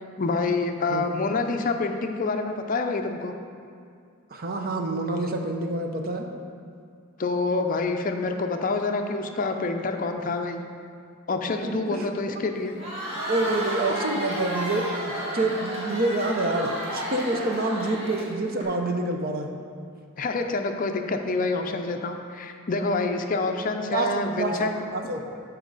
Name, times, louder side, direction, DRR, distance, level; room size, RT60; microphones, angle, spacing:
voice 1, 0.2-3.3 7.2-10.6 11.3-12.8 20.2-24.8, left 3 dB, 40° left, 5 dB, 0.5 m, -27 dB
voice 2, 4.3-6.3 11.6-12.0 13.1-19.5 23.9-25.2, right 2 dB, 45° right, 3 dB, 0.7 m, -27 dB
Crowd, 12.6-18.6, right 1 dB, 30° right, 1.9 m, -32 dB
12.0 x 4.5 x 4.0 m, 2.3 s
head